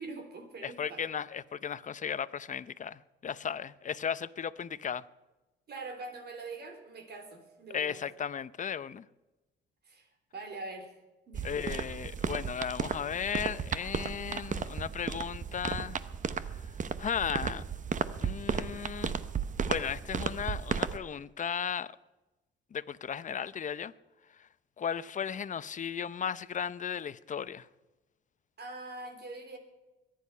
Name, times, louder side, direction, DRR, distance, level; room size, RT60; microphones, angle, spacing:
voice 1, 0.0-1.0 5.7-8.0 9.9-10.1 10.3-10.9 11.3-11.7 28.6-29.6, right 3 dB, 55° right, 3.4 m, -43 dB
voice 2, 0.6-5.0 7.7-9.0 11.4-16.0 17.0-17.6 18.2-19.2 19.6-21.9 22.7-23.9 24.8-27.7, left 7 dB, 40° left, 0.6 m, -35 dB
sound 1, 11.3-21.0, right 6 dB, 40° right, 0.9 m, -34 dB
22.0 x 10.5 x 5.6 m
cardioid pair, 90°, 20 cm